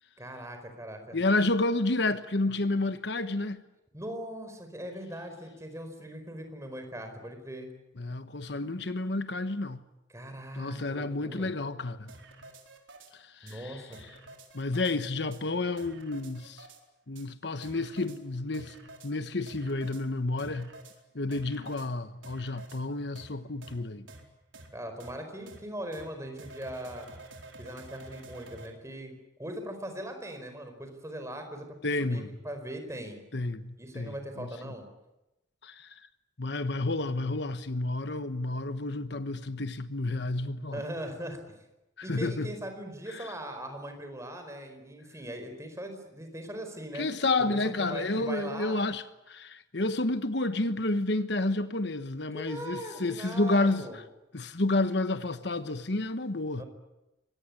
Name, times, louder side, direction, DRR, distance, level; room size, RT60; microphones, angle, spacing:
voice 1, 0.2-1.2 3.9-7.7 10.1-11.5 13.4-14.0 24.7-27.1 27.6-31.7 32.0-33.2 33.8-34.8 40.7-41.4 42.0-47.1 47.8-48.9 52.3-54.0 56.6-56.7, right 1 dB, 15° right, 4.7 m, -40 dB
voice 2, 1.1-3.6 8.0-9.8 10.5-12.1 13.1-13.8 14.5-16.7 17.1-18.7 19.0-20.7 21.1-24.1 31.8-32.3 33.3-34.7 35.6-36.0 36.4-40.8 42.0-42.5 43.1-43.3 46.9-53.9 54.3-56.6, left 2 dB, 60° left, 1.2 m, -30 dB
sound 1, 12.1-13.1 13.5-13.6 13.9-14.9 15.3-15.4 15.8-16.8 17.1-17.3 17.6-18.2 18.5-19.1 19.5-20.0 20.4-20.9 21.3-21.9 22.2-22.8 23.1-23.3 23.6-23.7 24.1-24.2 24.5-24.7 25.0-25.1 25.5-25.6 25.9-26.1 26.4-28.7, right 2 dB, 80° right, 4.4 m, -49 dB
24.5 x 19.5 x 9.7 m
head